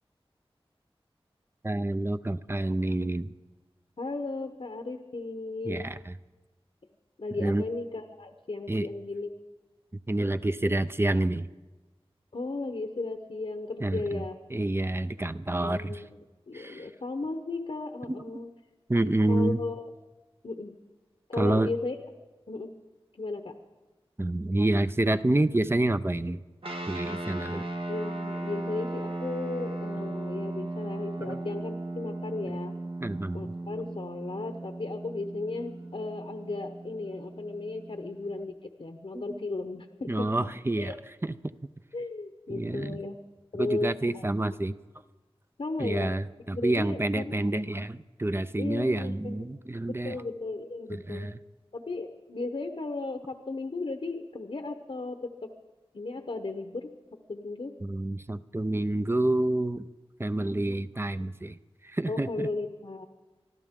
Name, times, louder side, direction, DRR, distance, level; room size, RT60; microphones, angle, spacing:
voice 1, 1.6-3.3 5.7-6.1 7.4-7.6 8.7-8.9 10.1-11.5 13.8-14.2 14.5-16.0 16.5-16.9 18.1-18.2 18.9-19.6 21.4-21.7 24.2-26.4 26.9-27.7 31.2-31.4 32.4-32.6 33.0-33.5 39.1-39.4 40.1-40.9 41.2-41.4 42.5-43.0 43.5-44.8 45.8-50.2 51.1-51.4 57.8-59.9 60.2-61.6 61.8-62.5, right 1 dB, 25° right, 12 dB, 0.5 m, -28 dB
voice 2, 4.0-5.9 7.2-9.3 12.3-14.4 15.6-16.2 16.5-18.5 19.3-19.9 20.4-20.8 21.3-22.0 22.5-22.8 23.2-23.5 27.9-32.8 33.3-40.3 40.8-41.0 41.9-43.2 43.5-44.2 45.6-46.2 46.5-47.4 48.6-49.4 49.9-51.3 51.7-55.5 55.9-56.9 57.3-57.7 62.1-63.0, left 3 dB, 65° left, 6 dB, 1.0 m, -35 dB
sound 1, 26.6-38.4, right 2 dB, 65° right, 1.5 m, -37 dB
24.5 x 13.0 x 3.7 m, 1.2 s
wide cardioid pair, 45°, 10 cm